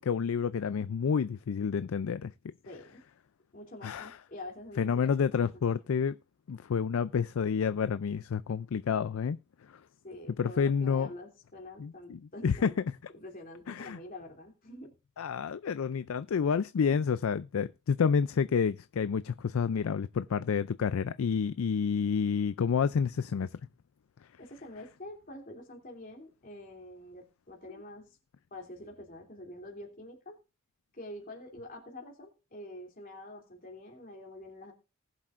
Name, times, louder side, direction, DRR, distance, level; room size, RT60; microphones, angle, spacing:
voice 1, 0.0-2.3 3.8-4.1 4.8-6.1 6.5-9.4 10.4-11.1 11.8-12.7 13.7-14.0 15.2-23.5, left 6 dB, 75° left, 0.4 m, -29 dB
voice 2, 2.6-3.0 3.5-5.8 10.0-12.7 13.1-15.2 24.4-28.2 28.5-30.4 30.9-34.7, left 1 dB, 45° left, 3.0 m, -46 dB
19.5 x 7.5 x 2.5 m
head